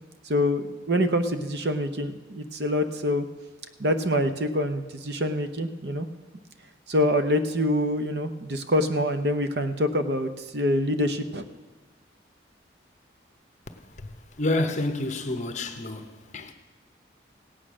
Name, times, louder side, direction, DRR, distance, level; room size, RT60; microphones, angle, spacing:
voice 1, 0.3-3.2 3.8-6.1 6.9-11.4, left 1 dB, 65° right, 0.8 m, -25 dB
voice 2, 14.4-16.5, left 2 dB, 40° left, 0.9 m, -29 dB
16.5 x 8.7 x 6.2 m
head